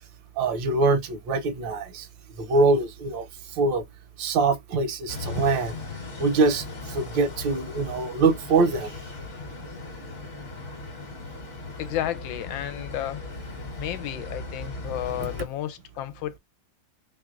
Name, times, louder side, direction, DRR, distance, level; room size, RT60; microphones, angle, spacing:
voice 1, 0.4-2.1 2.4-3.8 4.2-5.7 6.2-8.9, right 3 dB, 80° right, 1.5 m, -24 dB
sound 1, 5.1-15.5, left 3 dB, 45° left, 1.3 m, -38 dB
voice 2, 11.8-13.2 13.8-16.4, left 12 dB, 80° left, 1.3 m, -32 dB
3.4 x 3.4 x 2.5 m
omnidirectional pair, 2.1 m